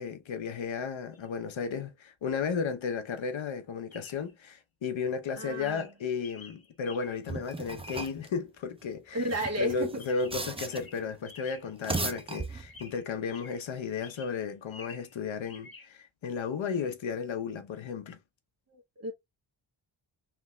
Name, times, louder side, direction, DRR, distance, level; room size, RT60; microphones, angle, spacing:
voice 1, 0.0-9.2 9.6-18.2, left 5 dB, 70° left, 0.9 m, -34 dB
Chirp tweet, 1.1-1.3 3.9-4.3 5.0-5.3 5.6-7.4 9.3-9.7 10.0-12.4 12.7-13.7 14.0-15.2 15.5-15.9, left 4 dB, 45° left, 1.8 m, -51 dB
voice 2, 5.4-5.9 9.1-9.9 18.7-19.1, right 1 dB, 30° right, 1.5 m, -33 dB
sound 1, 7.3-8.3 9.2-11.0 11.7-13.0, right 3 dB, 10° right, 0.5 m, -37 dB
3.6 x 3.4 x 3.1 m
wide cardioid pair, 115°, 48 cm